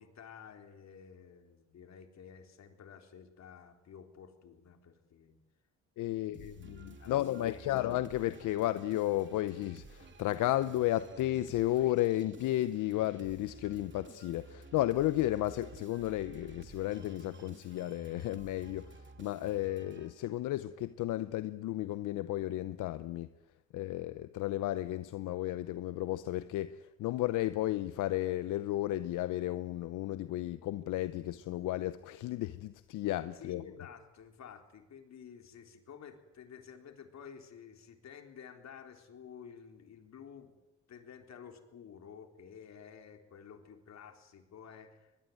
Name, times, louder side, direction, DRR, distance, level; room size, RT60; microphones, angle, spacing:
voice 1, 0.0-5.4 6.1-7.8 33.3-40.6 40.9-45.1, left 7 dB, 60° left, 5 dB, 4.0 m, -52 dB
voice 2, 6.0-23.3 23.7-33.6, left 14 dB, 85° left, 13 dB, 0.8 m, -33 dB
sound 1, 6.3-20.6, right 3 dB, 40° right, 3.5 m, -53 dB
22.5 x 22.0 x 9.4 m, 0.99 s
cardioid pair, 90°, 30 cm